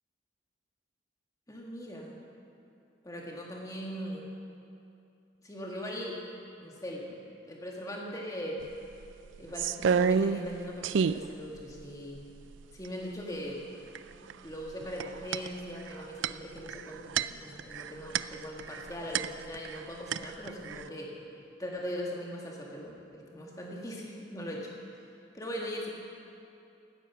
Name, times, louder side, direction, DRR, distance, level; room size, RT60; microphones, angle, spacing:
voice 1, 1.5-2.2 3.0-4.3 5.4-6.2 6.6-7.2 7.5-8.6 9.4-12.2 12.7-13.6 14.2-21.1 21.6-24.7 25.3-25.9, equal, 20° left, -2 dB, 1.8 m, -40 dB
sound 1, 8.6-8.7 9.0-10.6 10.8-11.3 11.8-11.9 12.2-12.9 13.9-14.3 14.6-19.8 20.1-20.9, right 6 dB, 70° right, 0.3 m, -30 dB
16.0 x 9.4 x 6.0 m, 2.6 s
head